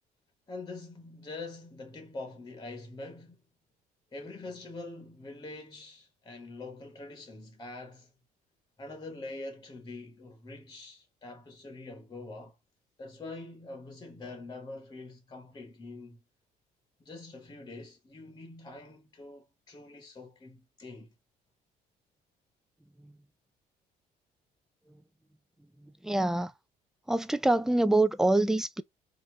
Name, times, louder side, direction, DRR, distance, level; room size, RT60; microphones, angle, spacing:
voice 1, 0.5-3.4 4.1-8.1 8.8-12.5 13.0-16.2 17.0-21.1, left 2 dB, 25° left, 1.2 m, -44 dB
voice 2, 25.8-26.5 27.1-28.8, right 2 dB, 5° right, 0.5 m, -26 dB
4.5 x 2.7 x 3.2 m
cardioid pair, 110°, 17 cm